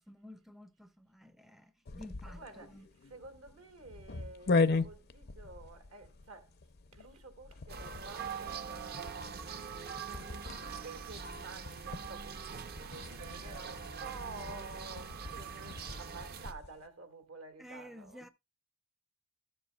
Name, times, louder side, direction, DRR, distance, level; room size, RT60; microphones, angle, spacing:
voice 1, 0.0-2.9 17.6-18.3, left 1 dB, ahead, 0.4 m, -52 dB
sound 1, 1.9-16.8, left 3 dB, 50° left, 0.6 m, -39 dB
voice 2, 2.2-6.6 6.9-18.2, right 3 dB, 75° right, 1.7 m, -51 dB
sound 2, 7.7-16.5, right 6 dB, 45° right, 0.7 m, -43 dB
13.0 x 7.5 x 2.3 m
head